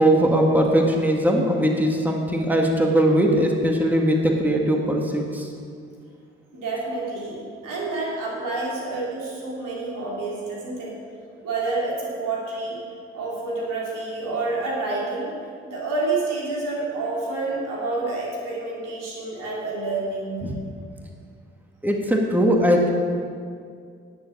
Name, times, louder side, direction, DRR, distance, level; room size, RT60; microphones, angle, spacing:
voice 1, 0.0-5.5 20.4-20.6 21.8-22.9, right 1 dB, 5° right, 0 dB, 1.8 m, -20 dB
voice 2, 6.5-7.4 7.6-11.0 11.4-12.8 13.1-15.3 15.6-20.4, right 3 dB, 75° right, -4 dB, 3.2 m, -28 dB
9.9 x 7.3 x 7.2 m, 2.2 s
hypercardioid pair, 45°, 32 cm